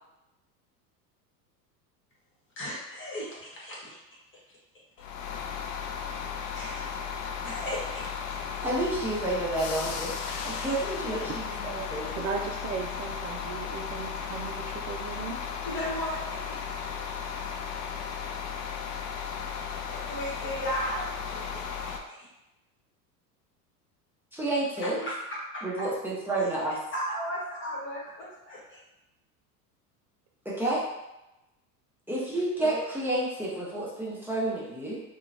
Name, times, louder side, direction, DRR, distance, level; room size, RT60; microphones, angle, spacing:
voice 1, 2.6-4.0 5.0-5.1 6.5-6.9 7.4-8.6 15.6-16.7 19.7-22.3 24.8-25.2 26.4-26.5 26.9-28.8 32.6-32.8, equal, 25° left, -5 dB, 1.1 m, -36 dB
sound 1, 5.0-22.0, left 6 dB, 70° left, 0.6 m, -35 dB
voice 2, 8.6-12.1 24.3-25.0 25.6-26.8 30.4-30.8 32.1-35.0, right 2 dB, 5° right, -7 dB, 0.7 m, -30 dB
voice 3, 12.1-15.4, right 5 dB, 55° right, 1 dB, 0.5 m, -36 dB
2.8 x 2.3 x 2.5 m, 0.94 s
hypercardioid pair, 85°, 49 cm